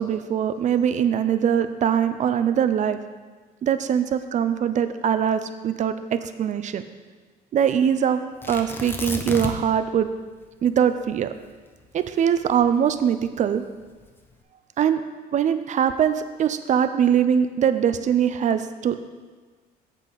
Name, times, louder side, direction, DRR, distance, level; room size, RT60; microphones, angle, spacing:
voice 1, 0.0-3.0 3.6-6.8 7.5-10.1 10.6-11.3 11.9-13.6 14.8-15.0 15.3-19.0, right 8 dB, 45° right, 10 dB, 0.5 m, -22 dB
Tearing, 8.4-9.8 10.1-10.2 10.7-13.1 13.8-14.3, left 2 dB, 15° left, 0.8 m, -32 dB
8.2 x 7.2 x 3.9 m, 1.4 s
cardioid pair, 110°, 17 cm